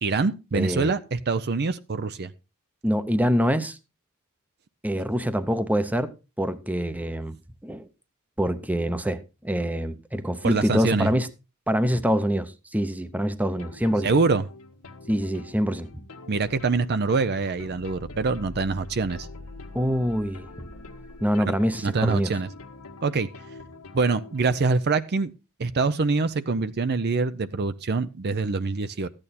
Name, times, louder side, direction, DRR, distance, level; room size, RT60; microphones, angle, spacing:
voice 1, 0.0-2.3 10.4-11.1 14.0-14.4 16.3-19.3 21.5-21.6 21.8-22.5 23.0-23.3 23.9-25.3 25.6-29.1, right 4 dB, 50° right, 0.6 m, -24 dB
voice 2, 0.5-0.9 2.8-3.8 4.8-6.1 6.4-7.4 7.6-7.9 8.4-11.3 11.7-14.1 15.1-15.9 19.7-20.5 21.2-22.3, equal, 5° right, 0.8 m, -25 dB
sound 1, 13.4-24.6, left 2 dB, 90° left, 1.4 m, -44 dB
14.0 x 8.9 x 4.2 m
head